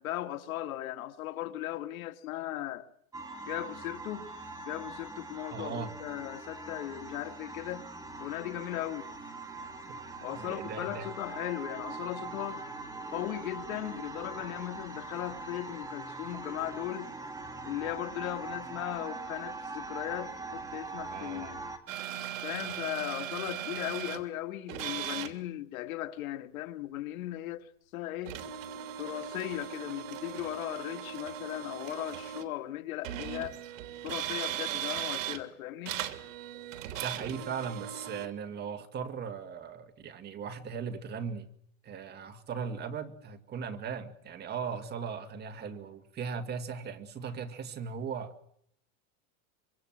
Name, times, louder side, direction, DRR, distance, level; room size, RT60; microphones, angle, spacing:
voice 1, 0.0-2.9 3.5-4.3 4.7-7.8 8.2-9.1 10.2-12.6 13.1-17.1 17.6-21.6 22.4-28.4 29.0-33.6 34.0-36.1, left 14 dB, 90° left, 2.1 m, -37 dB
sound 1, 3.1-21.8, right 3 dB, 10° right, 1.9 m, -42 dB
voice 2, 5.5-5.9 9.9-10.0 10.3-11.1 21.1-21.6 37.0-41.5 41.8-48.4, right 6 dB, 25° right, 2.0 m, -38 dB
sound 2, 21.9-24.2 24.7-25.3 28.2-32.5 33.0-35.4 35.8-38.3, right 11 dB, 70° right, 3.2 m, -38 dB
25.5 x 24.0 x 7.6 m
supercardioid pair, 160°, 40 cm